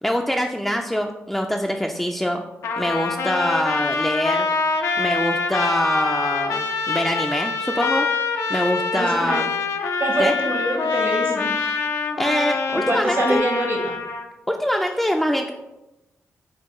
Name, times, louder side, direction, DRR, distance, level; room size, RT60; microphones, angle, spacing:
voice 1, 0.0-2.4 2.8-4.5 5.0-8.1 8.5-9.5 10.2-10.3 12.2-13.5 14.5-15.5, equal, 5° left, 2 dB, 0.3 m, -24 dB
Trumpet, 2.6-14.3, left 4 dB, 75° left, 0.4 m, -25 dB
voice 2, 8.9-9.4 10.0-11.5 12.7-13.9, right 1 dB, 50° right, 1 dB, 0.8 m, -25 dB
5.5 x 2.2 x 3.0 m, 0.98 s
cardioid pair, 55°, 5 cm